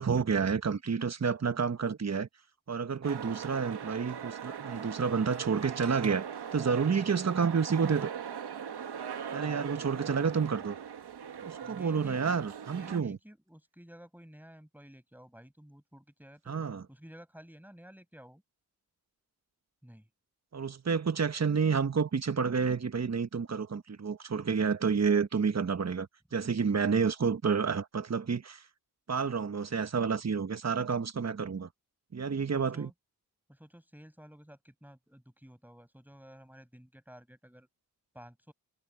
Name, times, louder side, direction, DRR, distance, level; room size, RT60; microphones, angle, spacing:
voice 1, 0.0-2.3 2.7-6.3 6.5-8.1 9.3-10.8 11.4-13.2 16.5-16.8 20.5-28.6 29.1-31.7 32.1-32.9, right 5 dB, 40° right, 1.3 m, -29 dB
sound 1, 3.0-13.0, right 8 dB, 85° right, 1.8 m, -40 dB
voice 2, 11.6-16.6 16.9-18.4 19.8-20.1 32.5-32.9 33.5-37.7 38.1-38.5, equal, 5° right, 5.7 m, -53 dB
cardioid pair, 45°, 39 cm